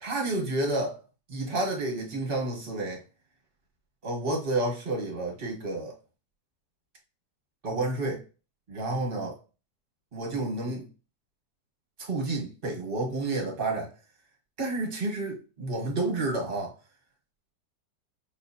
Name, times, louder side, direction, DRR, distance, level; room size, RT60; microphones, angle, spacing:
voice 1, 0.0-1.0 1.3-3.0 4.0-5.9 7.6-8.2 8.7-9.4 10.1-10.8 12.0-13.9 14.6-16.7, right 2 dB, 35° right, 1.4 m, -30 dB
5.5 x 2.8 x 2.8 m
omnidirectional pair, 1.8 m